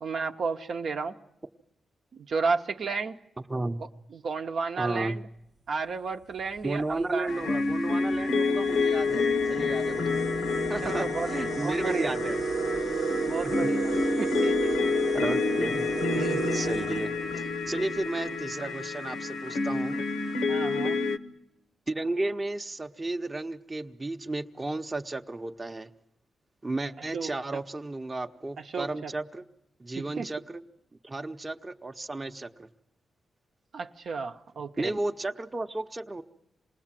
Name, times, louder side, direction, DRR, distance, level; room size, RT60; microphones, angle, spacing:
voice 1, 0.0-1.1 2.1-3.1 4.1-5.3 5.7-7.5 10.8-11.3 11.6-12.2 13.2-13.9 14.2-15.0 20.5-21.0 27.1-27.6 28.7-29.1 30.0-30.3 33.7-34.9, right 4 dB, 65° right, 4 dB, 0.8 m, -32 dB
voice 2, 3.4-3.8 4.8-5.2 6.6-10.2 10.7-12.4 13.4-14.0 15.1-15.9 16.1-20.0 21.9-25.9 26.6-29.4 29.8-30.6 31.0-32.7 34.8-36.2, right 2 dB, 25° right, 5 dB, 0.8 m, -33 dB
sound 1, 6.4-6.6 7.5-7.6 8.0-17.8, right 4 dB, 90° right, 1.1 m, -33 dB
sound 2, 7.3-21.2, left 4 dB, 80° left, 0.8 m, -29 dB
27.0 x 19.5 x 7.5 m, 0.86 s
cardioid pair, 90°, 0 cm